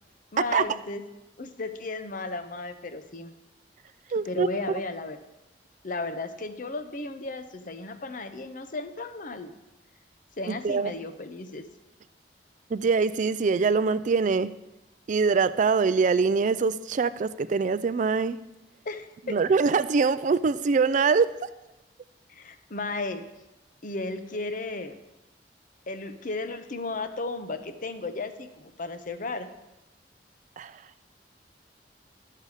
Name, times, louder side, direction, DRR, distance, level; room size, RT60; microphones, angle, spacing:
voice 1, 0.3-1.0 1.4-3.3 4.3-5.2 5.8-9.5 10.4-11.6 18.9-19.4 22.3-23.3 23.8-25.0 25.9-29.5, left 3 dB, 50° left, 9 dB, 0.8 m, -34 dB
voice 2, 4.1-4.5 10.5-10.9 12.7-14.5 15.1-18.4 19.3-21.5 30.6-30.7, right 5 dB, 45° right, 14 dB, 0.4 m, -23 dB
12.0 x 6.7 x 4.9 m, 0.98 s
head